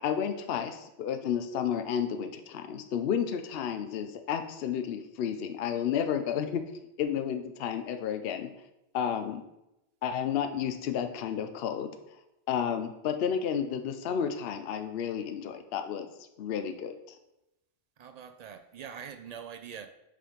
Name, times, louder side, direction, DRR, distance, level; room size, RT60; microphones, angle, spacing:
voice 1, 0.0-6.6 7.0-8.5 8.9-9.4 10.0-11.9 12.5-16.1 16.4-17.2, left 8 dB, 65° left, 0.8 m, -31 dB
voice 2, 18.0-19.9, right 7 dB, 60° right, 0.4 m, -43 dB
5.0 x 4.5 x 5.0 m
omnidirectional pair, 1.1 m